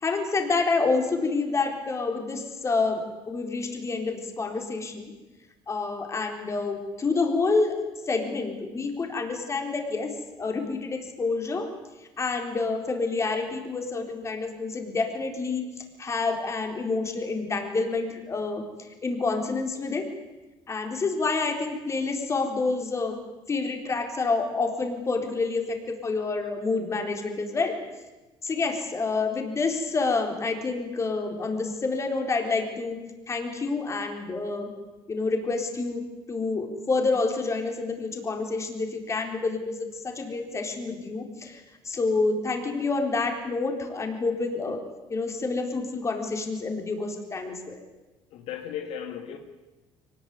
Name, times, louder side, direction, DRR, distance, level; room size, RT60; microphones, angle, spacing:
voice 1, 0.0-5.1 5.7-10.1 10.4-11.7 12.2-18.7 19.0-20.1 20.7-23.2 23.5-27.8 28.4-33.0 33.3-34.7 35.1-36.0 36.3-44.8 45.1-47.8, left 3 dB, 25° left, 4 dB, 4.2 m, -28 dB
voice 2, 48.3-49.4, left 9 dB, 70° left, 5 dB, 2.5 m, -35 dB
23.5 x 19.5 x 9.6 m, 1.1 s
cardioid pair, 120°, 11 cm